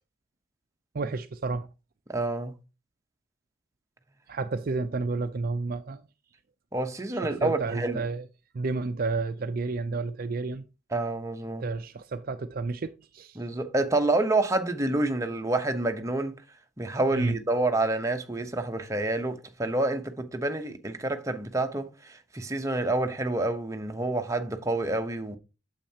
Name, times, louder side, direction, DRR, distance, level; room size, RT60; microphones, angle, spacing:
voice 1, 0.9-1.7 4.3-6.0 7.2-8.3 8.5-10.6 11.6-13.4 17.1-17.4, right 3 dB, 45° right, 0.4 m, -31 dB
voice 2, 2.1-2.6 6.7-8.0 10.9-11.7 13.4-16.3 16.8-25.4, right 2 dB, 15° right, 0.8 m, -28 dB
8.8 x 7.3 x 2.8 m
head